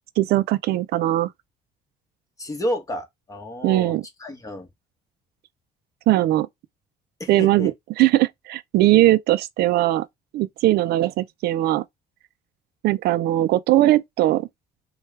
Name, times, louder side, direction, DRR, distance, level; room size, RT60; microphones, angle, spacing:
voice 1, 0.2-1.3 3.6-4.0 6.1-6.5 7.3-10.1 10.3-11.8 12.8-14.5, right 15 dB, 70° right, 0.4 m, -20 dB
voice 2, 2.4-4.7 7.2-7.7, equal, 20° left, 1.3 m, -31 dB
4.4 x 2.3 x 3.2 m
cardioid pair, 110°, 17 cm